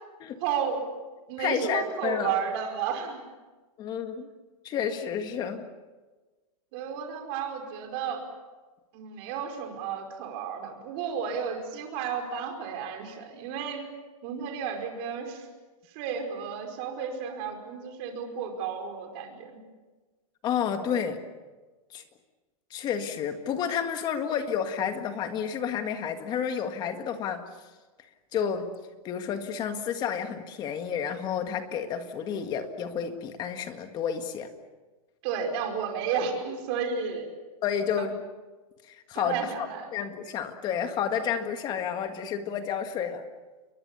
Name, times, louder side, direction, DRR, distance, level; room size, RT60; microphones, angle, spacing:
voice 1, 0.4-0.9 1.3-3.2 6.7-8.2 8.9-13.9 14.2-15.5 15.9-19.6 35.2-37.3 39.1-39.9, right 7 dB, 40° right, 3 dB, 5.2 m, -32 dB
voice 2, 1.4-2.3 3.8-4.3 4.6-5.7 20.4-21.2 21.9-22.0 22.7-27.4 28.3-28.7 29.0-34.5 37.6-38.2 38.9-39.4 39.9-43.2, left 8 dB, 20° left, 7 dB, 1.8 m, -30 dB
29.5 x 22.5 x 7.0 m, 1.3 s
supercardioid pair, 165°, 20 cm